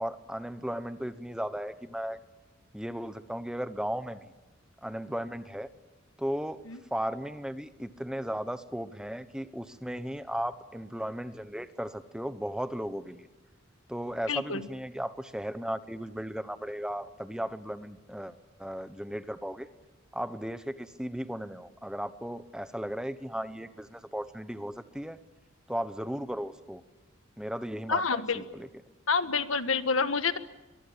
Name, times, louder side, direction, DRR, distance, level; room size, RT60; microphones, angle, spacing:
voice 1, 0.0-2.2 2.7-4.3 4.8-5.7 6.2-6.6 6.9-13.3 13.9-19.7 20.1-25.2 25.7-26.8 27.4-28.7, equal, 5° right, 11 dB, 1.0 m, -36 dB
voice 2, 14.3-14.6 27.9-28.4 29.1-30.4, left 5 dB, 80° left, 11 dB, 1.5 m, -28 dB
23.0 x 23.0 x 8.9 m, 1.1 s
head